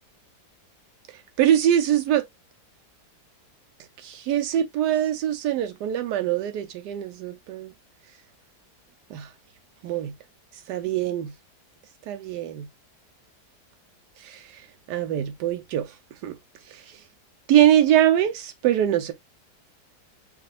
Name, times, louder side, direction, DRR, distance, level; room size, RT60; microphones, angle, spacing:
voice 1, 1.4-2.2 4.2-7.7 9.1-9.3 9.8-10.1 10.7-11.3 12.1-12.6 14.2-14.6 14.9-16.0 16.2-16.4 16.7-17.0 17.5-19.1, right 11 dB, 85° right, 1.2 m, -23 dB
4.7 x 2.7 x 2.4 m
omnidirectional pair, 1.8 m